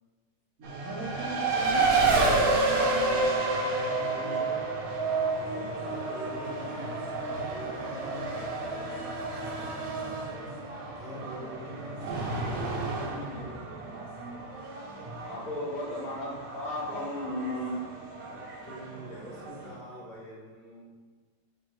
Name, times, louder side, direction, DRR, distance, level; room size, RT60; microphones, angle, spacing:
voice 1, 0.6-3.2 4.3-4.4, right 1 dB, 55° right, -8 dB, 1.0 m, -40 dB
Race car auto racing, 0.6-19.8, right 3 dB, 75° right, 0.8 m, -30 dB
voice 2, 3.9-5.4 5.8-6.9 7.3-8.4 9.8-12.3 12.5-13.7 18.3-20.9, equal, 75° left, -6 dB, 1.8 m, -44 dB
voice 3, 15.2-17.8, left 1 dB, 50° left, -8 dB, 1.6 m, -34 dB
4.1 x 2.9 x 3.0 m, 1.4 s
omnidirectional pair, 2.2 m